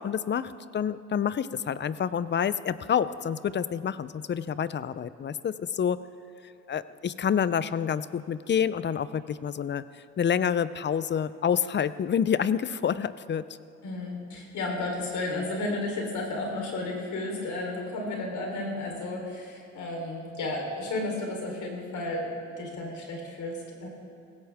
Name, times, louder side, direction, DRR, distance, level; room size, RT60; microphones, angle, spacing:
voice 1, 0.0-6.0 6.7-9.8 10.2-13.4, left 8 dB, 35° left, 16 dB, 0.5 m, -28 dB
voice 2, 13.8-23.9, left 2 dB, 75° left, 0 dB, 3.7 m, -33 dB
18.0 x 16.5 x 3.5 m, 2.7 s
cardioid pair, 90°, 30 cm